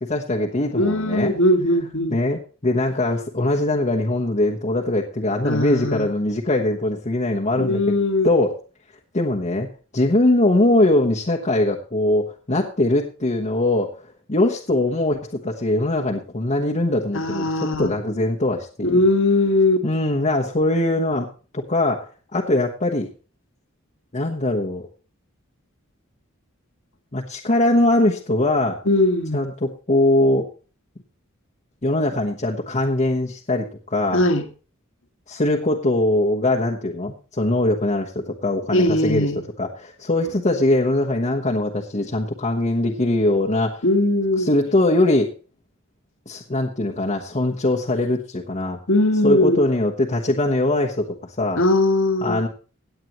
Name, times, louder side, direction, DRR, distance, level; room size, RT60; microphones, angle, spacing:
voice 1, 0.0-1.3 2.1-7.9 8.2-8.6 9.1-9.7 9.9-13.9 14.3-19.0 19.8-21.3 21.5-23.1 24.1-24.9 27.1-28.8 29.3-30.5 31.8-34.2 35.3-39.3 39.6-43.8 44.4-45.3 46.3-48.8 49.2-51.6 52.2-52.5, left 1 dB, 35° left, -2 dB, 1.2 m, -21 dB
voice 2, 0.7-2.2 5.4-6.1 7.6-8.3 17.1-17.9 18.8-19.8 28.8-29.4 34.1-34.5 38.7-39.4 43.8-44.5 48.9-49.6 51.6-52.4, left 1 dB, 65° left, 7 dB, 1.7 m, -20 dB
17.0 x 8.7 x 3.1 m, 0.36 s
head